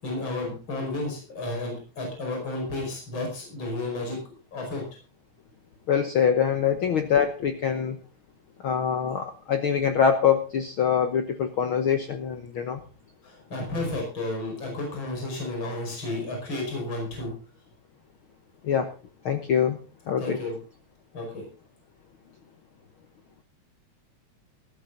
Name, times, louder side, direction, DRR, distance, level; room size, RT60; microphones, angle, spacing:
voice 1, 0.0-4.2 4.5-4.8 13.2-17.3 20.2-20.5 21.1-21.4, left 2 dB, 40° left, 1 dB, 5.9 m, -32 dB
voice 2, 5.9-8.0 8.6-12.8 18.6-18.9 19.2-19.8 20.1-20.4, left 7 dB, 60° left, 7 dB, 1.5 m, -24 dB
14.5 x 14.0 x 3.9 m, 0.34 s
omnidirectional pair, 3.4 m